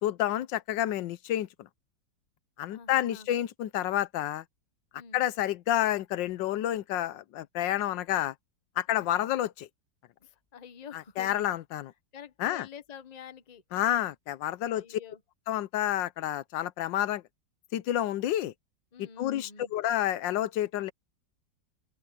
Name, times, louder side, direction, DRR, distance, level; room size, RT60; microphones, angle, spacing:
voice 1, 0.0-1.5 2.6-4.4 5.1-8.3 8.8-9.7 10.9-11.9 12.4-12.7 13.7-15.0 15.5-17.2 17.7-18.5 19.0-20.9, left 12 dB, 80° left, 1.4 m, -29 dB
voice 2, 2.7-3.3 5.0-5.2 8.9-9.1 10.2-11.4 12.1-13.6 14.7-15.2 18.9-19.7, left 7 dB, 30° left, 0.9 m, -47 dB
open air
omnidirectional pair, 2.0 m